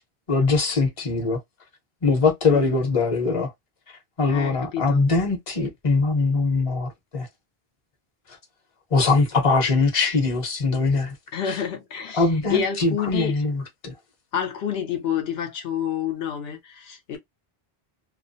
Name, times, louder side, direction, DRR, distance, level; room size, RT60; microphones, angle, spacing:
voice 1, 0.3-1.4 2.0-3.5 4.2-7.3 8.9-11.1 11.5-11.6 12.1-13.9, left 3 dB, 35° left, 0.8 m, -22 dB
voice 2, 4.3-5.0 11.3-13.4 14.3-17.2, left 8 dB, 75° left, 0.8 m, -28 dB
2.4 x 2.1 x 2.6 m
omnidirectional pair, 1.1 m